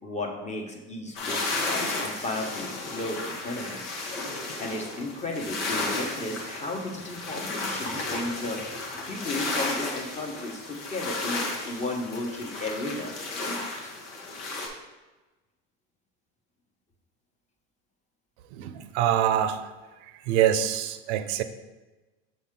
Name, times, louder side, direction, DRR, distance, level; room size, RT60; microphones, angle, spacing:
voice 1, 0.0-3.8 4.3-13.9, left 2 dB, 20° left, 2 dB, 1.1 m, -34 dB
sound 1, 1.2-14.7, left 2 dB, 90° left, 1.3 m, -33 dB
voice 2, 18.5-19.7 20.3-21.4, right 10 dB, 70° right, 10 dB, 0.6 m, -25 dB
6.6 x 4.1 x 3.7 m, 1.2 s
supercardioid pair, 110°, 34 cm